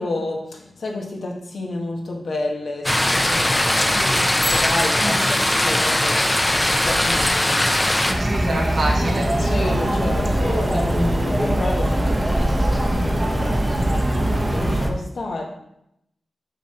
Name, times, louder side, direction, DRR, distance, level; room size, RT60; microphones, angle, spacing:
voice 1, 0.0-4.0 4.5-8.4 9.4-14.0 14.4-15.4, left 2 dB, 80° left, 0 dB, 1.4 m, -30 dB
sound 1, 2.8-8.1, left 1 dB, 15° left, 0.8 m, -19 dB
voice 2, 3.7-4.4 5.0-5.3 8.2-9.7, right 2 dB, 75° right, -1 dB, 1.7 m, -28 dB
Bicycle bell, 4.3-6.1, left 2 dB, 45° left, 1.5 m, -34 dB
sound 2, 8.1-14.9, right 1 dB, 25° right, 1.0 m, -21 dB
5.8 x 5.7 x 4.3 m, 0.79 s
cardioid pair, 55°, 0 cm